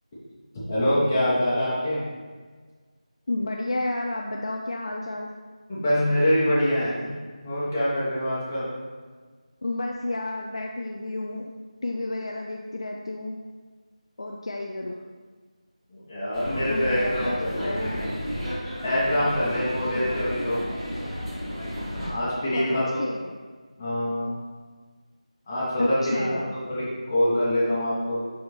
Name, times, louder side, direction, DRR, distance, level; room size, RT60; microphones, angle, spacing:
voice 1, 0.7-2.0 5.7-7.1 7.4-8.7 15.9-18.0 18.8-20.6 22.1-23.0 23.8-24.3 25.5-28.2, equal, 15° left, -10 dB, 1.2 m, -25 dB
voice 2, 3.3-5.3 9.6-11.5 11.8-13.4 14.2-15.0 16.7-17.9 20.0-20.3 22.5-23.4 25.8-26.5, left 2 dB, 50° left, 1 dB, 0.5 m, -31 dB
sound 1, 16.3-22.1, equal, ahead, 1.5 m, -32 dB
10.5 x 3.5 x 3.2 m, 1.5 s
figure-of-eight pair, 175°, 4 cm